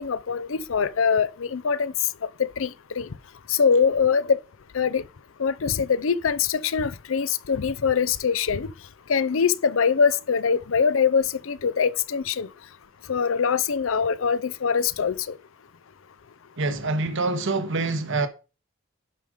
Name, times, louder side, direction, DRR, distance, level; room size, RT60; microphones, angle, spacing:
voice 1, 0.0-1.9 2.4-2.7 3.0-3.1 3.5-4.4 4.7-5.0 5.4-8.7 9.1-12.5 13.1-15.4, left 6 dB, 70° left, 0.6 m, -23 dB
voice 2, 16.6-18.3, right 3 dB, 65° right, 1.2 m, -25 dB
11.0 x 5.0 x 5.0 m
head